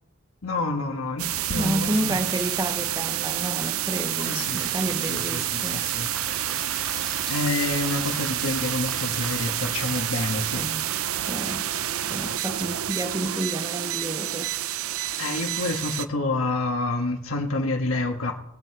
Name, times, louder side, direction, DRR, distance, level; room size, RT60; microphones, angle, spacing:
voice 1, 0.4-2.2 4.2-4.6 5.1-6.1 7.3-10.6 15.2-18.3, left 2 dB, 75° left, 2 dB, 1.6 m, -28 dB
sound 1, 1.2-16.0, right 12 dB, 90° right, 0.6 m, -29 dB
voice 2, 1.5-5.9 10.6-11.7 12.1-14.5, right 1 dB, 15° right, 8 dB, 0.8 m, -31 dB
sound 2, 4.4-10.1, left 1 dB, ahead, 1.7 m, -42 dB
21.0 x 7.9 x 4.8 m, 0.78 s
head